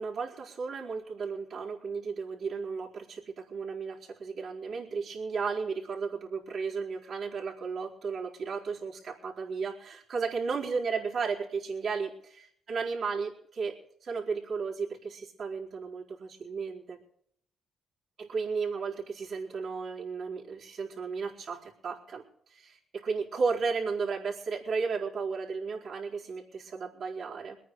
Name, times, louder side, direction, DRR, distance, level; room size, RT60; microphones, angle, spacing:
voice 1, 0.0-12.1 12.7-13.7 14.0-17.0 18.2-22.2 22.5-27.6, right 5 dB, 55° right, -5 dB, 4.4 m, -34 dB
23.0 x 9.3 x 4.8 m, 0.66 s
cardioid pair, 90°, 0 cm